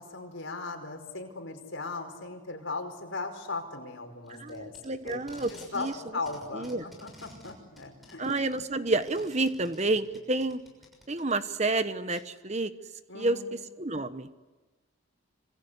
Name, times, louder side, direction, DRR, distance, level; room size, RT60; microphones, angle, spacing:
voice 1, 0.0-4.7 5.0-5.2 5.7-8.4 13.1-13.5, left 3 dB, 65° left, 4 dB, 5.1 m, -38 dB
Packing tape duct tape, 4.3-6.0 6.3-11.3 12.1-12.2, left 1 dB, ahead, 6.6 m, -52 dB
voice 2, 4.4-5.5 5.7-5.9 6.5-6.8 8.2-10.6 11.1-12.7 13.1-14.3, right 2 dB, 35° right, 11 dB, 1.2 m, -29 dB
27.0 x 26.0 x 8.3 m, 1.2 s
head